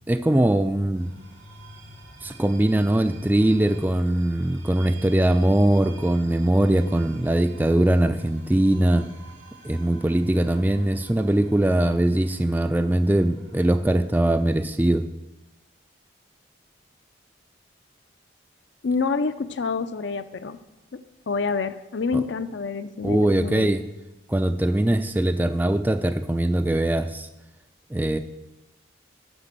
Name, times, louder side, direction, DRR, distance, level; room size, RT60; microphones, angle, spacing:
voice 1, 0.1-1.1 2.2-9.1 9.6-15.0 22.1-22.2 23.0-23.8 24.3-27.3 27.9-28.2, right 1 dB, 10° right, 9 dB, 0.3 m, -21 dB
sound 1, 0.9-14.0, right 1 dB, 75° right, 2.5 m, -46 dB
voice 2, 18.8-20.6 20.9-21.0 21.3-23.7, left 4 dB, 65° left, 11 dB, 0.5 m, -27 dB
8.0 x 6.1 x 7.5 m, 0.99 s
head